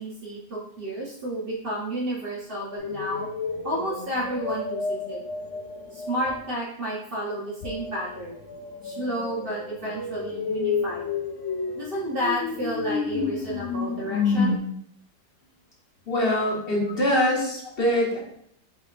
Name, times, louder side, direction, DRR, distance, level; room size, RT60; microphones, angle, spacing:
voice 1, 0.0-3.3 3.6-5.2 5.9-8.4 8.8-11.1 11.7-14.6, right 1 dB, 45° right, -4 dB, 0.8 m, -31 dB
sound 1, 2.8-6.4 7.6-14.6, left 5 dB, 70° left, 0.7 m, -30 dB
voice 2, 16.0-18.2, left 1 dB, 40° left, -4 dB, 1.3 m, -23 dB
4.9 x 3.4 x 2.4 m, 0.69 s
omnidirectional pair, 1.7 m